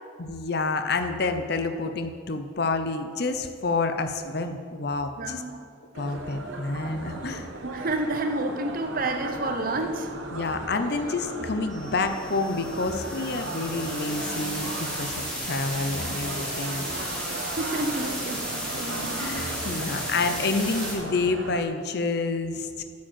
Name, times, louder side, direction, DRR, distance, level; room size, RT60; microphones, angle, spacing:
voice 1, 0.2-5.4 6.0-7.5 10.3-16.8 19.2-22.8, left 3 dB, 55° left, 8 dB, 0.7 m, -28 dB
voice 2, 5.2-5.6 7.6-10.1 17.5-19.2, right 2 dB, 45° right, 6 dB, 0.9 m, -30 dB
sound 1, 5.9-21.6, right 2 dB, 85° right, 1.1 m, -37 dB
sound 2, 11.7-20.9, equal, 5° left, 2.7 m, -34 dB
8.8 x 7.5 x 7.5 m, 2.2 s
head